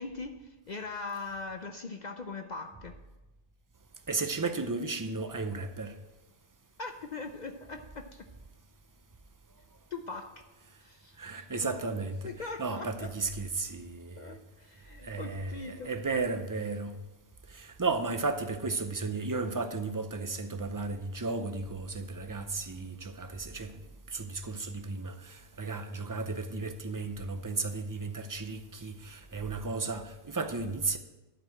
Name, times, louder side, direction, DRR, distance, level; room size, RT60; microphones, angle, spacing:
voice 1, 0.0-3.0 6.8-8.3 9.9-10.4 10.8-11.7 12.2-13.1 14.2-15.9, left 3 dB, 50° left, 0.7 m, -41 dB
voice 2, 4.1-5.9 11.2-12.3 12.6-14.4 15.0-16.9 17.5-23.7 24.1-31.0, right 3 dB, 25° right, 0.4 m, -34 dB
11.5 x 4.7 x 7.6 m
omnidirectional pair, 1.1 m